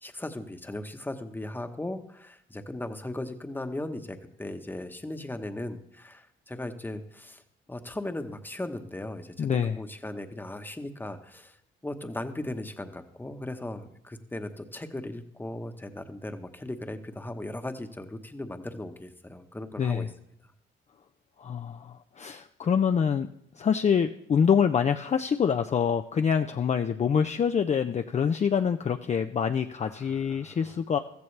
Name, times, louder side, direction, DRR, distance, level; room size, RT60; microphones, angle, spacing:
voice 1, 0.0-7.4 7.7-11.6 11.8-20.1 29.8-30.6, left 1 dB, 10° left, 7 dB, 1.1 m, -37 dB
voice 2, 9.4-9.8 19.8-20.1 21.4-23.3 23.6-31.0, left 7 dB, 35° left, 7 dB, 0.5 m, -26 dB
15.0 x 14.0 x 3.3 m, 0.73 s
cardioid pair, 90°, 20 cm